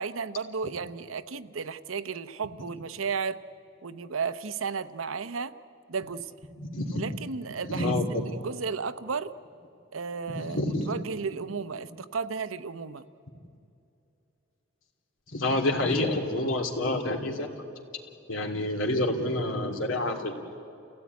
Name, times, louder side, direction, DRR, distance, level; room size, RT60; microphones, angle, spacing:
voice 1, 0.0-3.4 3.8-5.5 5.9-6.3 7.0-9.3 9.9-13.0, right 5 dB, 85° right, 12 dB, 0.8 m, -34 dB
voice 2, 6.6-7.0 7.7-8.4 10.3-10.9 15.3-17.5 18.3-20.6, left 1 dB, 75° left, 3 dB, 2.8 m, -28 dB
28.5 x 17.0 x 9.5 m, 2.7 s
head